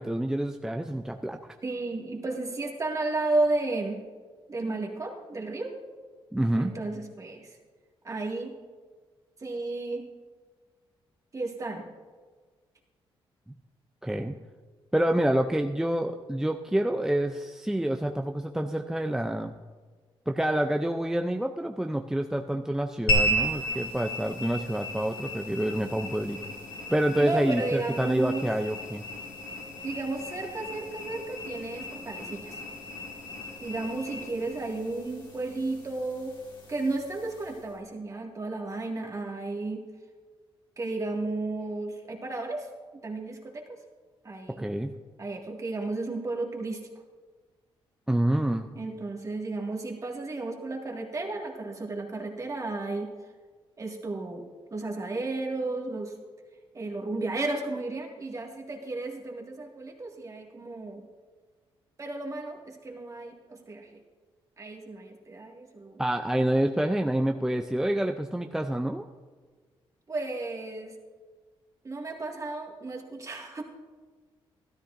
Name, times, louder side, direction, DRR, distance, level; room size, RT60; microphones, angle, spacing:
voice 1, 0.0-1.4 6.3-6.7 14.0-14.3 14.9-19.5 20.3-26.4 26.9-29.0 44.6-44.9 48.1-48.7 66.0-69.1, right 1 dB, 5° right, 4 dB, 0.5 m, -27 dB
voice 2, 1.6-4.0 4.5-5.7 6.6-7.6 8.0-8.6 9.4-10.0 11.3-11.8 27.2-28.5 29.8-32.6 33.6-36.3 36.7-39.8 40.8-43.6 44.2-44.7 45.2-46.8 48.8-53.1 53.8-54.5 54.7-56.1 56.7-61.0 62.0-64.0 64.6-66.0 70.1-70.9 71.8-73.6, right 2 dB, 35° right, 1 dB, 1.9 m, -33 dB
sound 1, 23.1-37.7, equal, 50° left, 2.3 m, -35 dB
13.0 x 13.0 x 2.6 m, 1.5 s
cardioid pair, 90°, 10 cm